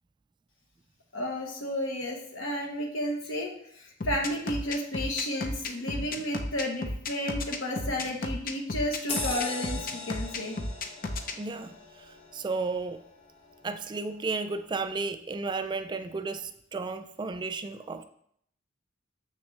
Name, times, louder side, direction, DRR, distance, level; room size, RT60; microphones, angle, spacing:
voice 1, 1.1-10.6, left 1 dB, 70° left, 1 dB, 1.2 m, -32 dB
sound 1, 4.0-11.3, left 2 dB, 45° left, 0.6 m, -33 dB
sound 2, 9.1-14.1 14.5-14.7, left 3 dB, 30° left, 1.0 m, -40 dB
voice 2, 11.4-11.7 12.3-13.0 13.6-18.0, right 4 dB, 20° right, 9 dB, 0.3 m, -33 dB
7.1 x 6.4 x 3.3 m, 0.68 s
head